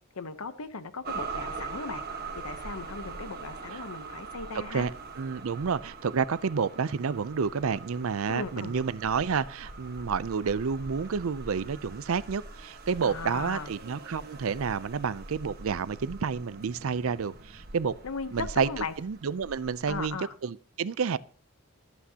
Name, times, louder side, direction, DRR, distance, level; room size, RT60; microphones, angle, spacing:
voice 1, 0.1-2.0 2.3-4.9 8.3-8.7 13.0-13.7 18.0-18.9 19.9-20.3, left 4 dB, 75° left, 0.9 m, -37 dB
sound 1, 1.0-20.1, right 4 dB, 45° right, 1.3 m, -43 dB
voice 2, 5.2-18.0 18.3-21.2, right 5 dB, 65° right, 0.5 m, -30 dB
24.0 x 8.3 x 2.8 m
head